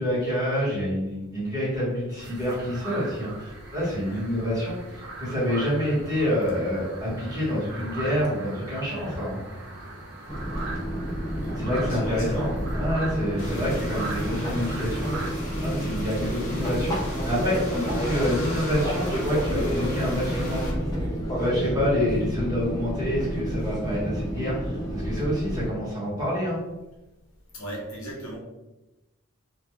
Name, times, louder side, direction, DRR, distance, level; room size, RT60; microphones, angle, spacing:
voice 1, 0.0-4.8 5.2-9.4 11.5-15.3 15.6-20.6 21.3-26.6, equal, 15° right, -9 dB, 1.0 m, -27 dB
sound 1, 2.2-15.3, right 2 dB, 50° right, 0.6 m, -39 dB
Fixed-wing aircraft airplane, 10.3-25.7, equal, 15° left, 0.5 m, -30 dB
voice 2, 11.8-12.5 13.2-13.4 20.1-20.2 27.5-28.4, right 1 dB, 65° left, -3 dB, 0.8 m, -37 dB
sound 2, 13.4-20.7, equal, 35° left, 0.9 m, -37 dB
2.3 x 2.2 x 3.0 m, 1.0 s
head